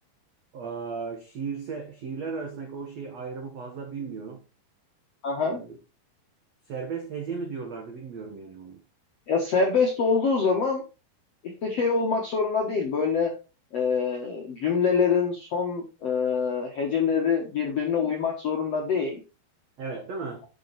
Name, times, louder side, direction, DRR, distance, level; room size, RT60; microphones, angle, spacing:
voice 1, 0.5-4.4 5.4-5.8 6.7-8.8 19.8-20.5, right 5 dB, 80° right, 1.5 m, -35 dB
voice 2, 5.2-5.6 9.3-10.8 11.6-13.3 13.7-19.2, left 5 dB, 70° left, 1.5 m, -25 dB
10.0 x 5.8 x 4.3 m
omnidirectional pair, 5.3 m